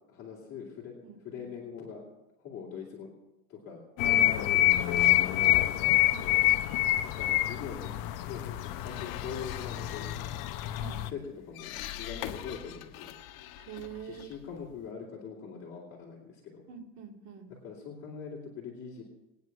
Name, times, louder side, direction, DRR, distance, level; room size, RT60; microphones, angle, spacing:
voice 1, 0.1-0.9 1.2-2.0 2.4-3.1 3.5-3.8 4.0-5.9 6.2-6.4 7.0-7.9 8.2-10.2 11.1-11.2 11.5-13.1 14.0-16.6 17.6-19.0, left 6 dB, 35° left, -5 dB, 3.0 m, -43 dB
voice 2, 1.0-1.5 6.1-6.6 10.7-11.0 13.5-14.3 16.7-17.5, right 8 dB, 60° right, 0 dB, 2.8 m, -46 dB
sound 1, 4.0-11.1, left 15 dB, 55° left, 0.8 m, -27 dB
sound 2, 8.4-14.9, left 12 dB, 80° left, 1.4 m, -44 dB
20.5 x 9.6 x 6.0 m, 1.0 s
cardioid pair, 160°, 40 cm